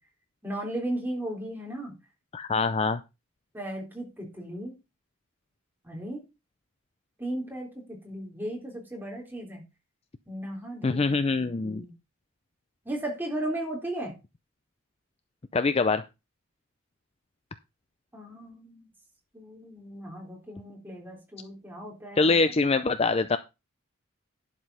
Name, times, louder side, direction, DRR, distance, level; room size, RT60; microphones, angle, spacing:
voice 1, 0.4-1.9 3.5-4.7 5.8-6.2 7.2-9.6 10.3-11.0 11.4-11.9 12.9-14.1 18.1-18.9 19.3-22.3, right 1 dB, 10° right, -1 dB, 3.7 m, -36 dB
voice 2, 2.3-3.0 10.8-11.8 15.5-16.0 22.2-23.4, left 4 dB, 30° left, 11 dB, 0.4 m, -24 dB
11.0 x 5.0 x 5.5 m, 0.27 s
head